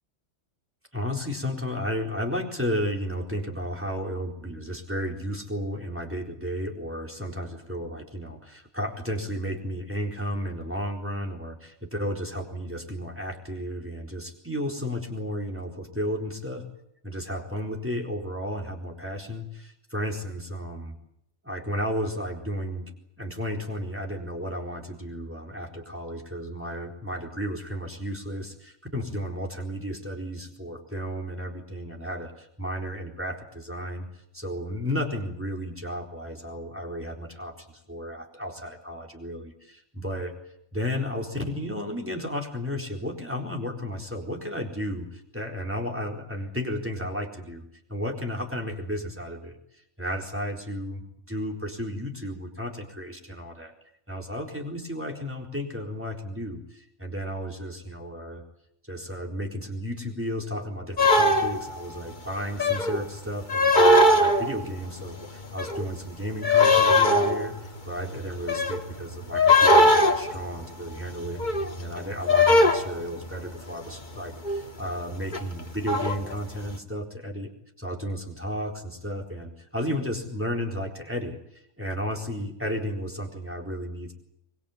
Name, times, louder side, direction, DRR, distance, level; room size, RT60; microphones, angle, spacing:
voice 1, 0.9-16.7 17.0-21.0 21.4-34.1 34.3-40.3 40.7-49.6 50.0-53.7 54.1-58.4 58.9-77.5 77.8-84.1, equal, 10° right, 1 dB, 4.2 m, -33 dB
sound 1, 61.0-61.8 62.6-63.0 63.5-64.8 65.1-66.1 66.4-73.6 74.4-74.8 75.1-76.6, left 2 dB, 35° left, 2.1 m, -21 dB
25.0 x 22.0 x 8.7 m, 0.77 s
omnidirectional pair, 1.3 m